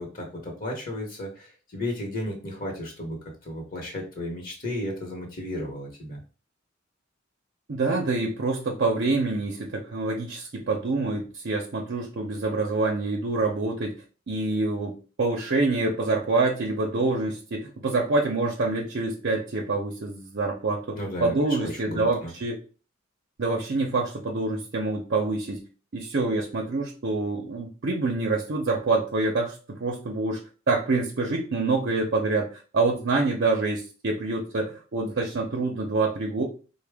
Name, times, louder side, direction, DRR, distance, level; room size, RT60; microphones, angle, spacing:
voice 1, 0.0-6.2 21.0-22.3, left 1 dB, 45° left, 1 dB, 1.0 m, -34 dB
voice 2, 7.7-13.9 14.3-22.6 23.4-25.6 25.9-30.4 30.7-36.4, right 3 dB, 60° right, 1 dB, 0.6 m, -26 dB
4.0 x 2.2 x 3.4 m, 0.35 s
head